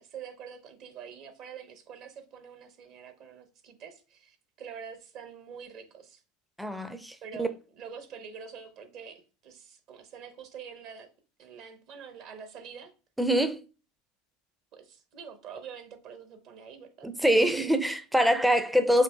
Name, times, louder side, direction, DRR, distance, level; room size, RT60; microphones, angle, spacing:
voice 1, 0.0-6.2 7.2-11.1 11.4-12.9 14.7-17.4, right 7 dB, 50° right, 0.8 m, -46 dB
voice 2, 6.6-7.5 13.2-13.6 17.0-19.0, equal, 5° right, 0.4 m, -24 dB
5.1 x 2.7 x 2.2 m
figure-of-eight pair, 80°, 0 cm